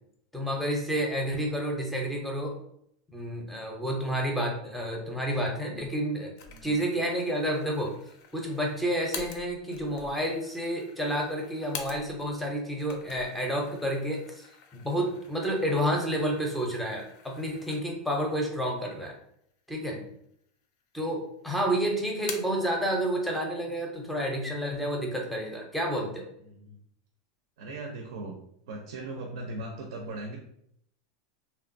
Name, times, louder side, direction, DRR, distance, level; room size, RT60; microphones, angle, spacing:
voice 1, 0.3-2.5 3.1-6.3 6.6-7.9 8.3-14.4 14.7-19.2 19.7-20.0 20.9-26.3, equal, 5° left, 0 dB, 0.5 m, -30 dB
sound 1, 6.4-12.4 12.7-18.2 18.6-18.7 19.5-20.2 20.5-21.3 21.6-22.7, left 6 dB, 55° left, 0.4 m, -46 dB
voice 2, 6.5-6.8 14.9-15.1 19.9-20.1 26.4-26.8 27.6-28.4 28.7-30.4, right 2 dB, 80° right, 1 dB, 0.5 m, -39 dB
2.9 x 2.2 x 2.5 m, 0.72 s
supercardioid pair, 155°, 2 cm